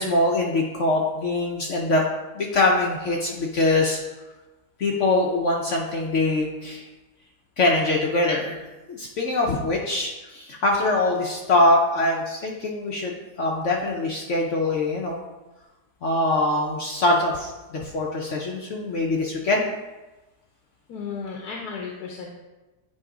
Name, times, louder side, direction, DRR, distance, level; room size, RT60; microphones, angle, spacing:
voice 1, 0.0-2.0 2.3-4.0 4.8-6.8 7.6-8.6 8.9-15.2 16.0-19.7, left 2 dB, 55° left, -1 dB, 0.9 m, -23 dB
voice 2, 20.9-22.3, left 5 dB, 70° left, -1 dB, 1.4 m, -34 dB
9.2 x 3.4 x 4.9 m, 1.1 s
omnidirectional pair, 1.7 m